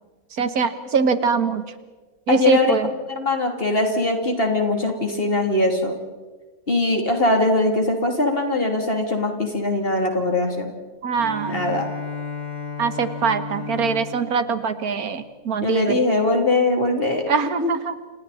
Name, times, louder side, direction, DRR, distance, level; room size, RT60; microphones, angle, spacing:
voice 1, 0.4-1.6 2.3-2.9 11.0-11.8 12.8-16.0 17.3-17.9, right 5 dB, 85° right, 11 dB, 1.8 m, -23 dB
voice 2, 2.3-2.7 3.1-6.0 6.7-10.7 11.5-11.9 15.6-17.2 17.6-17.7, left 2 dB, 40° left, 3 dB, 3.4 m, -21 dB
Bowed string instrument, 11.2-15.9, left 4 dB, 20° right, 3.6 m, -34 dB
29.5 x 28.0 x 4.3 m, 1.3 s
omnidirectional pair, 1.5 m